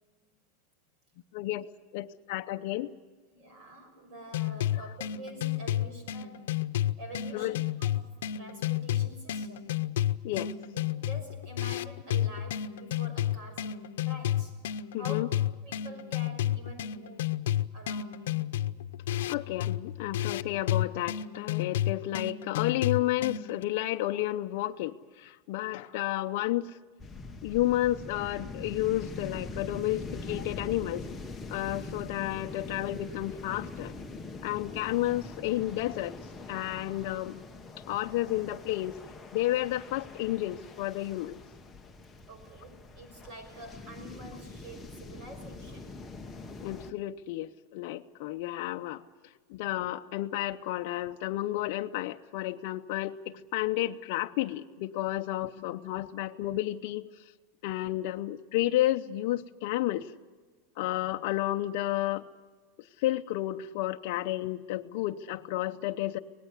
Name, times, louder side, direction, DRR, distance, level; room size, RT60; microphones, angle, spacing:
voice 1, 1.3-1.7 1.9-2.9 7.3-7.6 10.2-10.5 14.9-15.3 19.3-25.0 25.2-26.7 27.4-31.0 31.5-33.9 34.4-36.1 36.5-37.4 37.9-39.0 39.3-41.4 46.6-49.0 49.5-57.1 57.6-60.0 60.8-62.3 63.0-66.2, left 15 dB, 50° left, 4 dB, 0.7 m, -31 dB
voice 2, 3.3-6.4 7.0-7.5 7.8-9.6 10.3-10.4 10.7-15.2 15.6-17.3 17.7-18.2 42.3-45.9, right 1 dB, 35° right, 6 dB, 6.1 m, -47 dB
sound 1, 4.3-23.6, left 12 dB, 90° left, 0.8 m, -31 dB
sound 2, 27.0-46.9, left 3 dB, 10° left, 1.0 m, -43 dB
25.0 x 19.0 x 8.2 m, 1.4 s
supercardioid pair, 170°, 0 cm